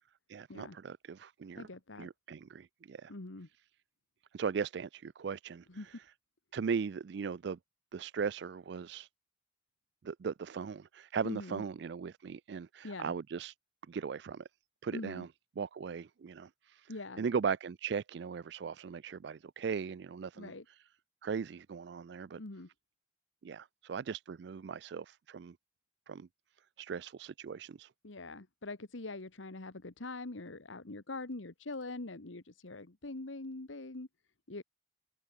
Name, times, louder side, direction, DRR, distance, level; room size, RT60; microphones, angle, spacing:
voice 1, 0.3-1.7 2.0-3.1 4.3-6.0 6.5-7.6 7.9-9.1 10.0-13.5 13.9-14.5 14.8-15.3 15.6-16.9 17.2-20.8 21.2-22.4 23.4-25.6 26.1-26.3 26.8-27.9, right 6 dB, 60° right, 0.4 m, -38 dB
voice 2, 1.6-2.1 3.1-3.5 5.7-5.9 11.2-11.6 12.8-13.1 14.9-15.3 16.9-17.2 20.4-20.6 22.4-22.7 28.0-34.1 34.5-34.6, left 2 dB, 85° left, 1.5 m, -43 dB
open air
head